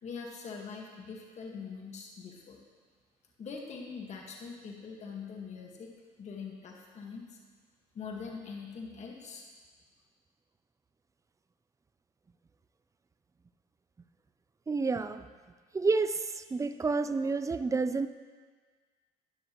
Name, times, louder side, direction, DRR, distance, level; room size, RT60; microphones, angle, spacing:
voice 1, 0.0-2.6 3.4-5.9 6.2-7.4 7.9-9.4, left 5 dB, 45° left, 0 dB, 1.7 m, -43 dB
voice 2, 14.7-15.3 15.7-18.1, right 4 dB, 20° right, 11 dB, 0.5 m, -29 dB
13.0 x 10.0 x 3.0 m, 1.5 s
cardioid pair, 95°, 16 cm